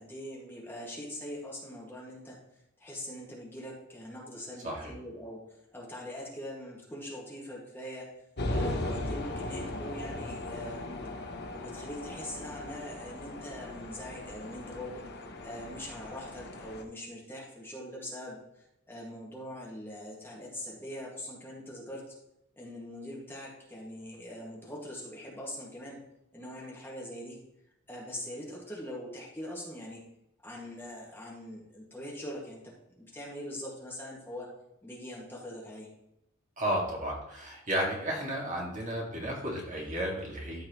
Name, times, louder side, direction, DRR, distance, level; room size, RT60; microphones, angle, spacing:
voice 1, 0.0-2.4 2.8-5.4 5.7-8.1 8.5-10.9 11.5-15.1 15.4-18.4 18.9-22.0 22.6-26.0 26.3-27.4 27.9-30.0 30.4-34.5 34.8-35.9, left 1 dB, 10° left, -4 dB, 1.9 m, -42 dB
sound 1, 8.4-16.8, left 1 dB, 55° left, 1.0 m, -38 dB
voice 2, 36.6-40.6, right 1 dB, 40° right, -2 dB, 2.2 m, -33 dB
13.5 x 4.7 x 3.1 m, 0.87 s
head